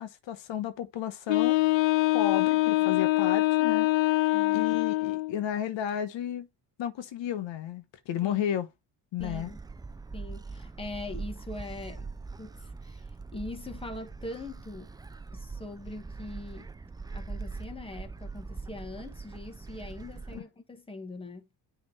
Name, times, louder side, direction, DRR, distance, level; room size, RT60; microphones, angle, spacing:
voice 1, 0.0-1.7 2.1-3.9 4.5-6.5 6.8-8.7 9.1-9.5 20.3-20.4, left 10 dB, 75° left, 1.2 m, -33 dB
Wind instrument woodwind instrument, 1.3-5.4, left 19 dB, 90° left, 0.7 m, -24 dB
voice 2, 4.3-4.7 8.2-8.4 9.2-9.6 10.1-12.1 12.4-14.9 15.3-16.7 17.1-21.5, left 2 dB, 10° left, 1.6 m, -42 dB
Gull seagull, 9.2-20.4, right 4 dB, 10° right, 0.3 m, -42 dB
9.8 x 3.5 x 4.3 m
cardioid pair, 135°, 45 cm